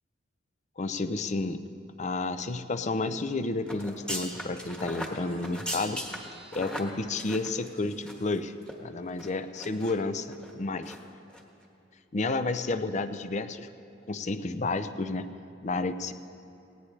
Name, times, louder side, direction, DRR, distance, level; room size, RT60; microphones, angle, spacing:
voice 1, 0.8-1.6 2.0-6.0 6.5-8.5 8.8-11.0 12.1-13.7 14.1-15.3 15.6-16.1, left 3 dB, 40° left, 11 dB, 0.5 m, -31 dB
sound 1, 3.7-8.4 8.6-8.7 9.2-9.9 10.3-10.5 10.8-11.0 11.3-11.4, equal, 5° left, 1.3 m, -38 dB
18.0 x 18.0 x 3.3 m, 2.8 s
head